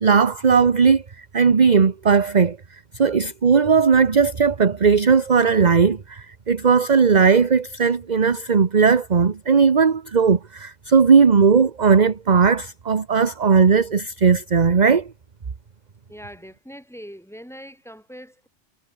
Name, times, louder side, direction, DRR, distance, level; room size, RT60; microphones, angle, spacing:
voice 1, 0.0-1.0 1.3-2.6 3.0-15.1, right 5 dB, 35° right, 1.1 m, -17 dB
voice 2, 16.1-18.5, equal, ahead, 5.7 m, -41 dB
omnidirectional pair, 1.3 m